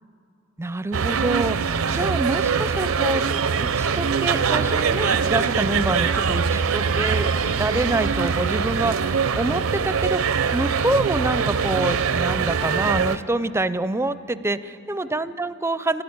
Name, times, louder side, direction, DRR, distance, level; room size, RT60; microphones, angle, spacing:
voice 1, 0.6-3.2 3.5-16.0, right 2 dB, 10° right, 13 dB, 0.4 m, -26 dB
sound 1, 0.9-13.2, right 6 dB, 85° right, 0.6 m, -23 dB
28.5 x 13.0 x 9.6 m, 2.8 s
head